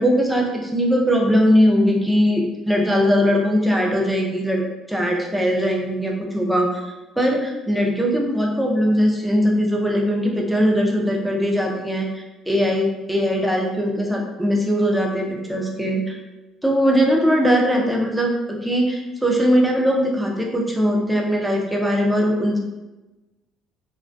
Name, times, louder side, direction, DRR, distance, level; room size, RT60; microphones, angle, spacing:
voice 1, 0.0-4.6 4.9-6.8 7.2-16.2 16.6-22.6, equal, 5° right, 0 dB, 0.4 m, -20 dB
2.3 x 2.1 x 2.5 m, 1.1 s
cardioid pair, 110°, 0 cm